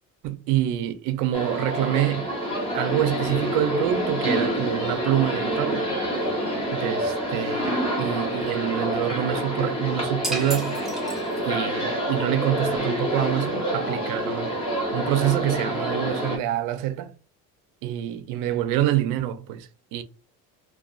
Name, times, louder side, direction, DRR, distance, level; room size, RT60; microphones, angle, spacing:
voice 1, 0.2-2.4 2.7-5.9 6.7-10.9 11.4-14.6 14.9-17.1 17.8-20.0, right 12 dB, 65° right, 0.5 m, -26 dB
sound 1, 1.3-16.4, equal, 15° left, 0.8 m, -27 dB
sound 2, 10.2-11.7, right 2 dB, ahead, 0.3 m, -33 dB
2.4 x 2.3 x 2.3 m
cardioid pair, 165°, 34 cm